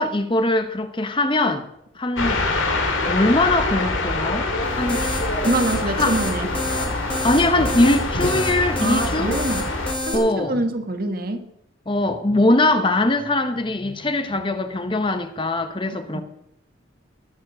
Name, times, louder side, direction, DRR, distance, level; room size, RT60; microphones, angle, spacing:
voice 1, 0.0-1.7 2.0-2.5 3.1-4.5 4.8-5.0 5.8-6.2 7.2-9.4 10.1-10.6 11.9-16.2, left 2 dB, 25° left, 0.9 m, -21 dB
sound 1, 2.2-9.9, left 2 dB, 85° left, 2.5 m, -25 dB
sound 2, 4.6-10.2, left 1 dB, 5° left, 2.4 m, -29 dB
voice 2, 5.4-6.5 8.8-9.6 10.0-11.5 16.1-16.2, right 2 dB, 50° right, 1.5 m, -25 dB
20.0 x 7.2 x 6.2 m
head